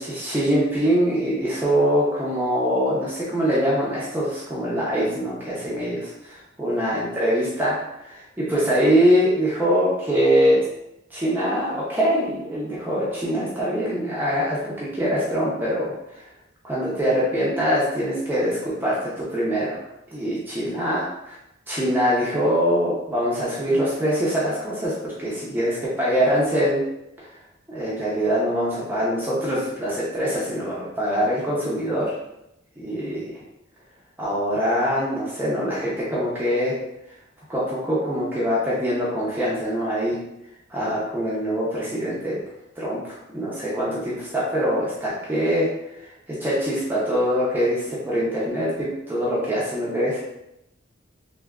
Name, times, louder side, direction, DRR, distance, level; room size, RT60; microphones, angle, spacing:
voice 1, 0.0-7.8 8.0-10.6 11.1-16.2 16.6-19.8 20.1-21.0 21.7-26.8 27.7-32.2 32.8-33.4 34.2-36.8 37.5-40.2 40.7-42.4 42.8-45.7 46.0-50.2, equal, 10° right, -7 dB, 0.6 m, -23 dB
3.4 x 2.6 x 2.3 m, 0.84 s
head